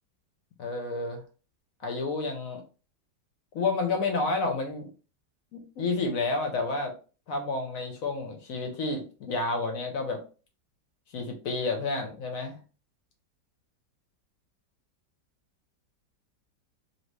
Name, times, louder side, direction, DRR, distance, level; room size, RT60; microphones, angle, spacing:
voice 1, 0.6-1.2 1.8-2.6 3.5-4.9 5.5-6.9 7.3-10.2 11.1-12.6, left 3 dB, 65° left, 4 dB, 0.9 m, -30 dB
2.7 x 2.7 x 3.2 m, 0.36 s
omnidirectional pair, 1.9 m